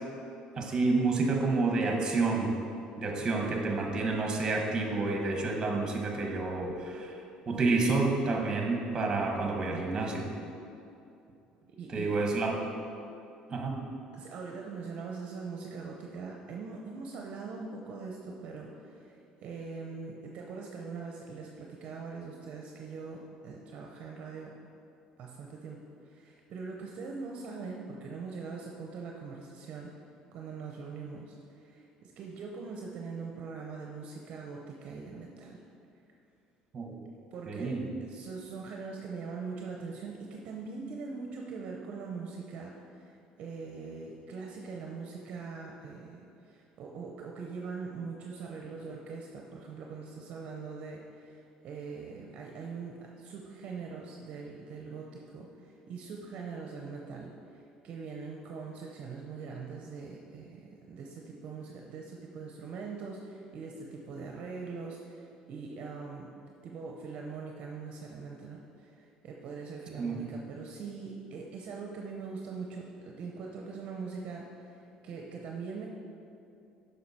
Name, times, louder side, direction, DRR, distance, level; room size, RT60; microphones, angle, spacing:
voice 1, 0.5-2.6 3.0-7.2 7.5-10.3 11.9-12.5 13.5-13.8 36.7-36.9 37.5-37.9 70.0-70.2, right 3 dB, 30° right, 1 dB, 1.3 m, -29 dB
voice 2, 11.7-12.2 14.1-24.5 25.2-29.9 30.3-35.6 37.3-37.8 38.1-66.3 66.6-75.9, right 4 dB, 55° right, 0 dB, 0.7 m, -42 dB
7.7 x 5.5 x 4.3 m, 2.7 s
cardioid pair, 115°, 2 cm